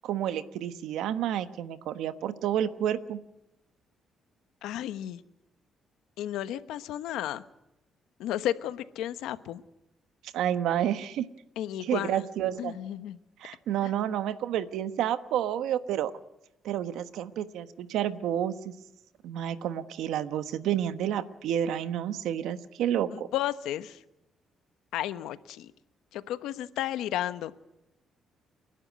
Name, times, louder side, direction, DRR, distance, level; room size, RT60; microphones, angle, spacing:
voice 1, 0.0-3.2 10.3-11.3 11.8-12.8 13.4-16.1 16.6-18.7 19.2-23.3, right 10 dB, 85° right, 11 dB, 1.2 m, -30 dB
voice 2, 4.6-5.2 6.2-7.4 8.2-9.6 11.6-12.2 12.6-13.2 13.8-13.9 23.1-24.0 24.9-25.7 26.1-27.5, left 12 dB, 90° left, 12 dB, 1.1 m, -33 dB
29.5 x 11.5 x 9.5 m, 0.90 s
cardioid pair, 90°, 0 cm